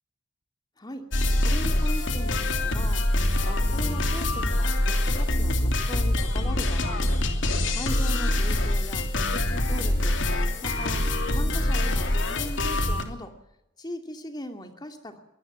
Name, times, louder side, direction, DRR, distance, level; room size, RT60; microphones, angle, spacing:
voice 1, 0.8-1.1 1.4-3.0 3.4-7.1 7.7-10.2 10.6-13.3 13.8-15.2, equal, 20° left, 6 dB, 2.6 m, -39 dB
sound 1, 1.1-13.0, left 1 dB, 70° left, 3.0 m, -25 dB
23.5 x 18.5 x 7.3 m, 0.84 s
head